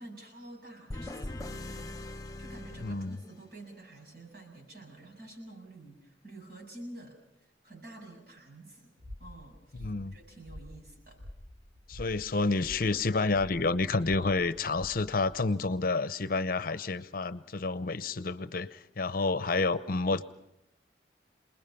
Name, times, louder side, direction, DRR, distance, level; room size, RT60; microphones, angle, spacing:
voice 1, 0.0-2.1 2.4-8.9 9.2-11.2, right 1 dB, 55° right, 1 dB, 7.3 m, -49 dB
sound 1, 0.9-3.7, left 2 dB, 20° left, 0.8 m, -41 dB
voice 2, 2.8-3.2 9.7-10.2 11.9-20.2, left 3 dB, 50° left, 14 dB, 0.7 m, -29 dB
sound 2, 9.0-15.4, left 1 dB, 75° right, 3.8 m, -48 dB
28.5 x 20.5 x 5.7 m, 0.82 s
head